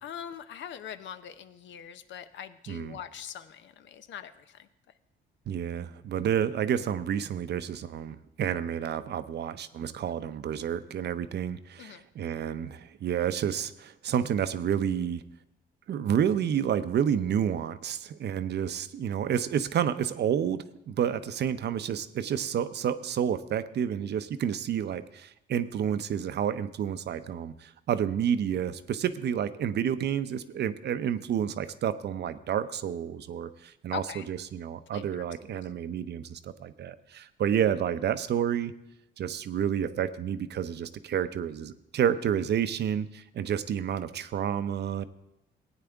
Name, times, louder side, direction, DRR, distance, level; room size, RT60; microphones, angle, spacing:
voice 1, 0.0-4.7 10.0-10.1 11.8-12.0 33.9-34.3 34.9-35.2 35.5-35.7, left 9 dB, 70° left, 12 dB, 0.7 m, -42 dB
voice 2, 2.7-3.0 5.5-15.2 15.9-38.7 39.2-45.0, right 9 dB, 60° right, 13 dB, 0.6 m, -30 dB
16.5 x 9.1 x 3.5 m, 0.86 s
cardioid pair, 90°, 20 cm